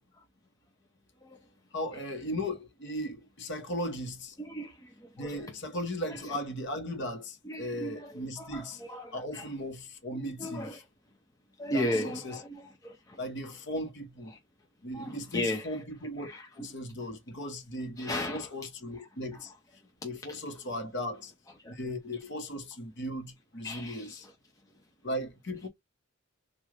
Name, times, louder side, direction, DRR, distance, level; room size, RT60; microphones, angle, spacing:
voice 1, 1.7-4.4 5.2-8.8 9.1-10.8 11.7-12.4 13.2-14.3 14.8-16.3 16.6-19.5 20.0-21.3 21.7-24.3 25.0-25.7, left 1 dB, 50° left, 0.9 m, -37 dB
voice 2, 4.4-5.5 6.1-6.4 7.4-9.5 10.1-10.8 11.6-13.6 14.3-14.4 14.9-15.7 16.2-16.7 18.0-18.5 19.3-19.4 20.7-20.8 21.6-21.8 23.6-24.3, left 1 dB, 15° left, 0.4 m, -37 dB
3.6 x 2.3 x 3.2 m
head